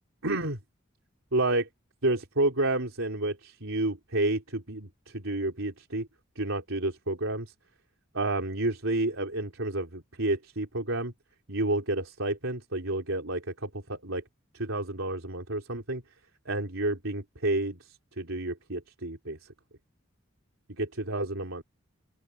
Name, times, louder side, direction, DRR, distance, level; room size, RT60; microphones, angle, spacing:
voice 1, 0.2-0.6 1.3-1.7 2.0-6.1 6.4-7.5 8.1-11.1 11.5-14.2 14.5-16.0 16.5-19.4 20.7-21.6, right 2 dB, 80° right, 3.9 m, -30 dB
open air
head